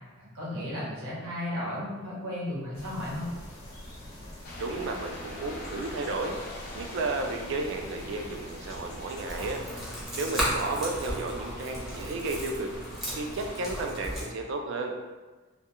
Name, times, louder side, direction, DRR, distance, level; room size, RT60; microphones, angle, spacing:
voice 1, 0.2-3.3, left 1 dB, 85° right, -6 dB, 0.9 m, -34 dB
sound 1, 2.7-10.1, left 1 dB, 75° left, 0.8 m, -45 dB
sound 2, 4.4-13.9, left 1 dB, 45° left, 0.5 m, -45 dB
voice 2, 4.6-6.4 6.7-9.6 10.2-12.7 13.2-14.9, right 3 dB, 60° right, 2 dB, 0.3 m, -33 dB
sound 3, 9.3-14.2, equal, ahead, 0.6 m, -34 dB
2.3 x 2.2 x 2.8 m, 1.3 s
head